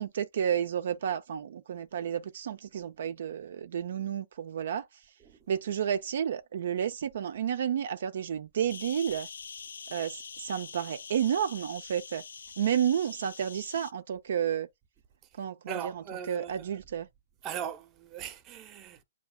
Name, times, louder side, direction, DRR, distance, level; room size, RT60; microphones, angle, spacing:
voice 1, 0.0-4.9 5.5-9.3 9.9-12.2 12.6-14.7 15.4-15.9 16.3-17.1, right 9 dB, 65° right, 0.4 m, -31 dB
sound 1, 8.7-13.9, left 6 dB, 85° left, 0.3 m, -45 dB
voice 2, 15.7-16.7 17.4-19.0, right 8 dB, 20° right, 0.6 m, -39 dB
7.9 x 2.7 x 2.3 m
hypercardioid pair, 155°, 0 cm